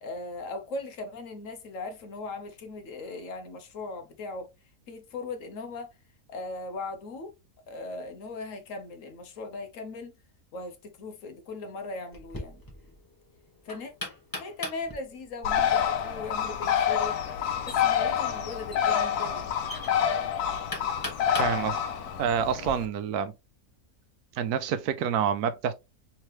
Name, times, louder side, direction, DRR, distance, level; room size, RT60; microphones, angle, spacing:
voice 1, 0.0-4.5 4.9-5.9 6.3-7.3 7.7-10.1 10.5-12.6 13.6-13.9 14.4-19.5, left 3 dB, 60° left, 1.1 m, -39 dB
Knock, 12.1-22.7, left 2 dB, 15° left, 1.0 m, -42 dB
Bird, 15.4-22.9, left 8 dB, 85° left, 1.2 m, -27 dB
voice 2, 21.3-21.8 22.2-23.3 24.3-25.7, right 7 dB, 80° right, 1.1 m, -27 dB
3.6 x 3.2 x 2.9 m
omnidirectional pair, 1.6 m